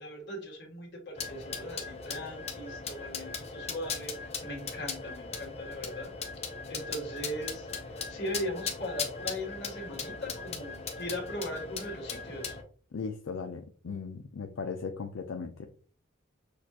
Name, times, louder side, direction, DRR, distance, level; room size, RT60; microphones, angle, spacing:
voice 1, 0.0-6.1 6.7-12.6, equal, 55° left, 0 dB, 1.6 m, -39 dB
sound 1, 1.1-12.6, left 5 dB, 30° left, 0.7 m, -38 dB
voice 2, 12.9-15.7, left 5 dB, 75° left, 4 dB, 0.5 m, -37 dB
6.3 x 2.4 x 2.8 m, 0.41 s
head